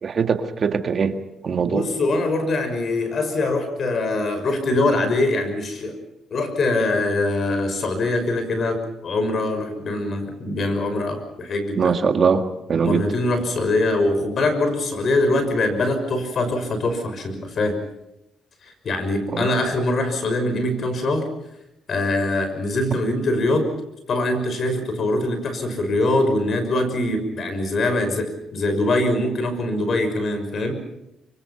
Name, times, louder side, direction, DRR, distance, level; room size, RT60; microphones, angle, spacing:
voice 1, 0.0-1.2 1.4-1.9 11.8-13.0 19.3-19.5, right 6 dB, 50° right, 7 dB, 1.8 m, -21 dB
voice 2, 1.6-6.0 6.3-12.0 12.8-17.8 18.6-21.3 21.9-23.7 24.1-30.8, left 2 dB, 55° left, 8 dB, 6.1 m, -23 dB
25.5 x 24.5 x 5.8 m, 0.85 s
cardioid pair, 90°, 0 cm